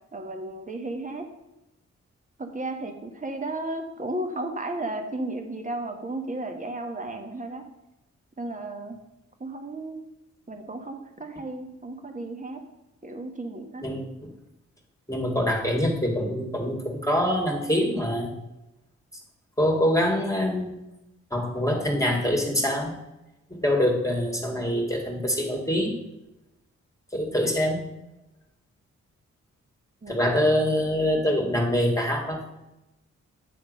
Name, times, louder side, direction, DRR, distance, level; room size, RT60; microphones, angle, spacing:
voice 1, 0.1-1.3 2.4-7.6 8.4-9.0 9.4-10.0 10.5-12.6 13.0-13.8 30.0-30.2 31.1-31.2 31.5-31.6, right 2 dB, 25° right, 5 dB, 1.3 m, -34 dB
voice 2, 15.1-18.3 19.6-20.8 21.3-22.9 23.5-26.0 27.1-27.8 30.1-32.6, equal, 10° left, 0 dB, 2.0 m, -24 dB
8.8 x 3.6 x 6.3 m, 0.93 s
supercardioid pair, 45°, 31 cm